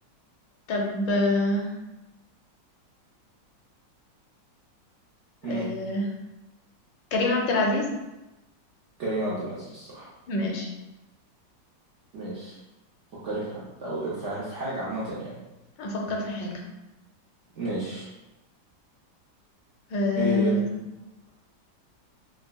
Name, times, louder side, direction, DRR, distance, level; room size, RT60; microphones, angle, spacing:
voice 1, 0.7-1.7 5.4-6.0 7.1-7.9 10.3-10.7 15.8-16.6 19.9-20.8, left 2 dB, 85° left, 0 dB, 1.3 m, -26 dB
voice 2, 9.0-10.1 12.1-12.6 13.1-15.4 17.6-18.1 20.2-20.6, right 2 dB, 60° right, -8 dB, 0.7 m, -31 dB
4.7 x 2.1 x 2.2 m, 0.99 s
omnidirectional pair, 2.0 m